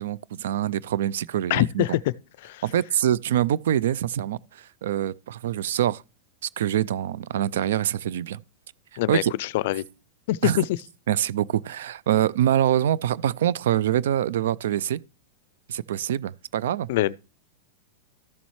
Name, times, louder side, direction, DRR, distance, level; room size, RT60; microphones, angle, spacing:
voice 1, 0.0-1.8 2.6-6.0 6.6-8.4 8.9-9.3 10.4-10.6 11.1-15.0 15.7-16.9, right 11 dB, 80° right, 0.4 m, -25 dB
voice 2, 1.5-2.0 2.4-2.6 9.0-9.8 10.3-10.6 16.9-17.2, left 15 dB, 65° left, 0.4 m, -24 dB
13.5 x 7.0 x 3.1 m
hypercardioid pair, 130°, 0 cm